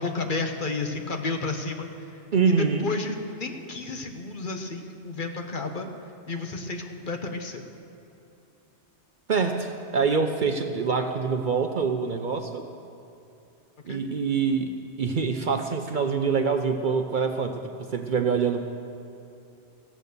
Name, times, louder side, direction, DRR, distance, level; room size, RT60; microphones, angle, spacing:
voice 1, 0.0-2.2 2.6-5.9 6.3-7.6 13.9-14.0, left 3 dB, 45° left, 5 dB, 1.1 m, -32 dB
voice 2, 2.3-2.9 9.3-12.7 13.8-18.7, right 5 dB, 50° right, 6 dB, 0.7 m, -25 dB
15.0 x 9.0 x 6.7 m, 2.8 s
omnidirectional pair, 1.2 m